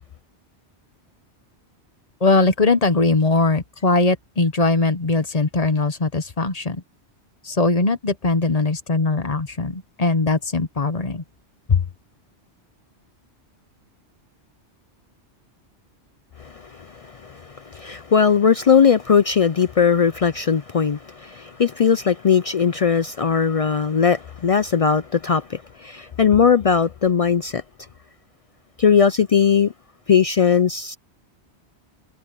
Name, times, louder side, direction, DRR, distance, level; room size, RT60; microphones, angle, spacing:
voice 1, 2.2-6.8 7.4-11.2 11.7-11.8, left 3 dB, 35° left, 1.1 m, -20 dB
voice 2, 16.4-27.6 28.8-29.7 30.1-31.0, left 6 dB, 55° left, 0.4 m, -19 dB
omnidirectional pair, 1.2 m